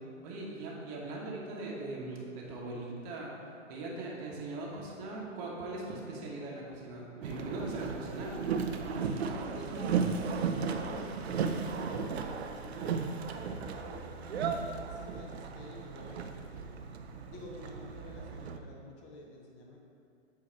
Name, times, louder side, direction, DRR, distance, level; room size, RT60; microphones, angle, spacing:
voice 1, 0.2-3.3 3.7-8.3, right 2 dB, 30° right, -3 dB, 1.0 m, -40 dB
Boat Water vehicle, 7.2-18.6, right 5 dB, 60° right, 0.5 m, -35 dB
voice 2, 8.9-13.0 13.6-16.8 17.3-19.8, left 2 dB, 15° left, -1 dB, 0.5 m, -49 dB
7.5 x 2.8 x 4.5 m, 2.6 s
hypercardioid pair, 130°, 37 cm